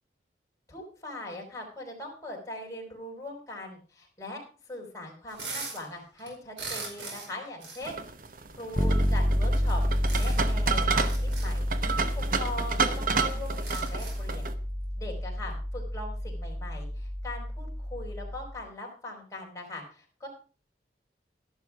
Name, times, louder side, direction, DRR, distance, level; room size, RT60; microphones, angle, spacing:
voice 1, 0.7-8.0 8.6-11.7 12.0-14.5 15.0-20.3, left 1 dB, 20° left, -1 dB, 4.7 m, -41 dB
sound 1, 5.3-5.9 6.2-7.3 7.6-7.9 8.8-8.9 10.1-10.5 11.0-11.5 12.4-12.5 12.8-12.9 13.4-14.3, right 4 dB, 80° right, 5.0 m, -39 dB
sound 2, 7.8-14.5, right 5 dB, 50° right, 1.0 m, -31 dB
Bass guitar, 8.8-18.5, equal, 10° right, 0.9 m, -29 dB
12.5 x 11.5 x 4.8 m, 0.38 s
head